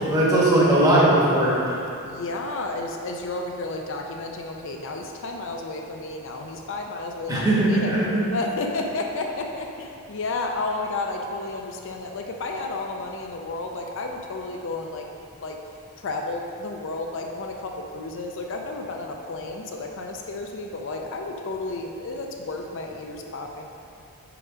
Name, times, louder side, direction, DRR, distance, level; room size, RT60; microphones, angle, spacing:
voice 1, 0.0-1.6 7.3-8.0, right 1 dB, 15° right, -7 dB, 1.1 m, -19 dB
voice 2, 2.0-7.9 8.3-15.1 15.4-15.6 16.0-23.7, left 2 dB, 55° left, 2 dB, 0.4 m, -32 dB
4.9 x 4.8 x 5.0 m, 2.7 s
head